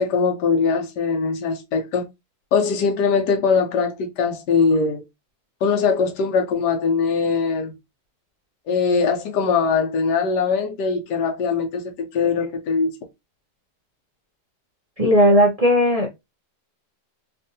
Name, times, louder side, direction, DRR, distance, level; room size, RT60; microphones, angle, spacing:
voice 1, 0.0-2.1 2.5-5.0 5.6-7.7 8.7-13.0, left 5 dB, 80° left, 1.3 m, -21 dB
voice 2, 15.0-16.1, equal, 45° right, 0.5 m, -16 dB
3.5 x 2.5 x 2.6 m
omnidirectional pair, 1.8 m